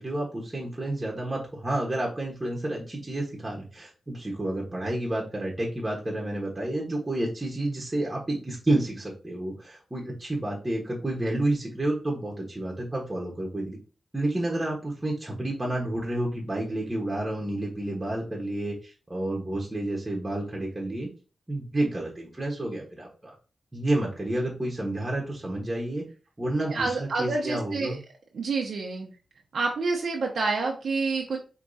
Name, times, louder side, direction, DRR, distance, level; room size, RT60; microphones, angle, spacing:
voice 1, 0.0-13.8 14.1-21.1 21.5-23.3 23.7-26.0 26.4-28.0, right 1 dB, 15° right, -3 dB, 1.1 m, -30 dB
voice 2, 26.7-27.9 28.3-29.1 29.5-31.4, right 3 dB, 75° right, 0 dB, 0.7 m, -28 dB
4.6 x 2.9 x 2.7 m, 0.35 s
cardioid pair, 80°, 0 cm